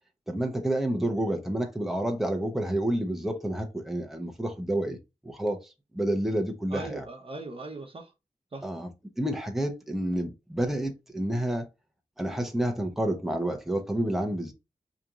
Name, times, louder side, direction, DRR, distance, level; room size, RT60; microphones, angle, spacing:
voice 1, 0.3-5.0 5.2-7.0 8.6-8.9 9.2-11.7 12.2-14.5, right 1 dB, ahead, 0.8 m, -29 dB
voice 2, 6.7-8.1 8.5-8.7, right 2 dB, 45° right, 0.9 m, -39 dB
5.0 x 3.0 x 2.5 m
wide cardioid pair, 95°, 13 cm